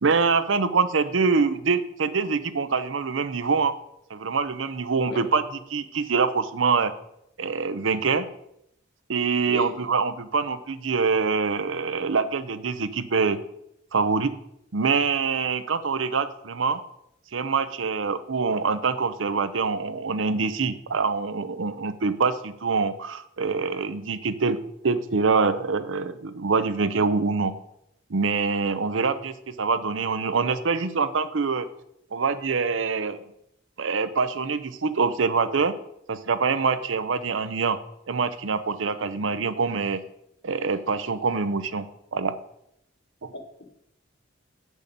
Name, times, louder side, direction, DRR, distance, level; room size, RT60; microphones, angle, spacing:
voice 1, 0.0-3.8 4.1-5.4 5.7-6.9 7.4-8.3 9.1-13.4 13.9-14.3 14.7-16.8 17.3-24.6 24.8-27.5 28.1-31.7 32.1-33.2 33.8-35.7 36.1-37.8 38.1-40.0 40.4-41.9 42.1-42.4 43.2-43.3, right 4 dB, 85° right, 12 dB, 0.7 m, -25 dB
voice 2, 43.3-43.6, left 2 dB, 60° left, 4 dB, 1.4 m, -36 dB
8.4 x 6.3 x 5.2 m, 0.78 s
head